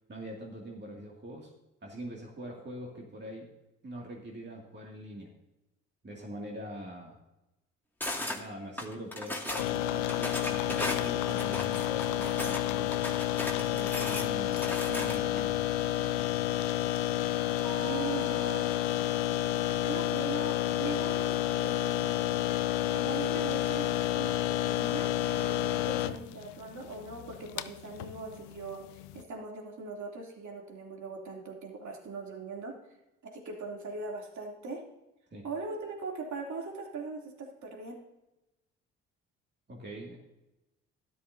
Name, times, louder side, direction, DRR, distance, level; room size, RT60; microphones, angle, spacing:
voice 1, 0.1-1.5 1.8-3.5 3.8-5.3 6.0-7.2 8.2-13.0 13.5-15.6 35.3-35.4 39.7-40.2, equal, 30° right, -1 dB, 2.4 m, -43 dB
sound 1, 8.0-8.4 8.8-9.7 10.1-12.6 12.9-15.4, left 1 dB, 5° left, 2.2 m, -36 dB
sound 2, 9.6-29.2, left 13 dB, 85° left, 0.6 m, -30 dB
Mallet percussion, 17.6-19.4, right 10 dB, 35° left, 2.6 m, -47 dB
voice 2, 17.8-18.7 19.9-22.6 22.9-28.8 29.1-32.7 33.2-34.8 35.4-38.0, right 4 dB, 55° right, 0 dB, 3.1 m, -40 dB
12.5 x 11.5 x 2.7 m, 0.95 s
hypercardioid pair, 55°, 35 cm